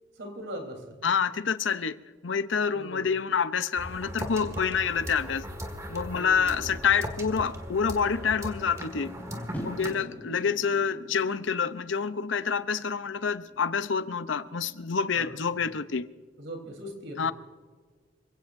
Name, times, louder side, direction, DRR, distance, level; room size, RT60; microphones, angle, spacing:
voice 1, 0.2-1.1 2.7-3.1 6.1-6.8 9.8-10.2 15.1-15.6 16.4-17.3, right 1 dB, 75° right, 3.7 m, -41 dB
voice 2, 1.0-2.0 2.2-5.5 5.9-9.1 9.6-16.1 17.2-17.3, left 6 dB, 80° left, 0.7 m, -27 dB
sound 1, 3.8-9.9, equal, 15° right, 1.8 m, -38 dB
sound 2, 9.5-15.8, equal, 10° left, 3.9 m, -46 dB
27.0 x 17.0 x 2.6 m
head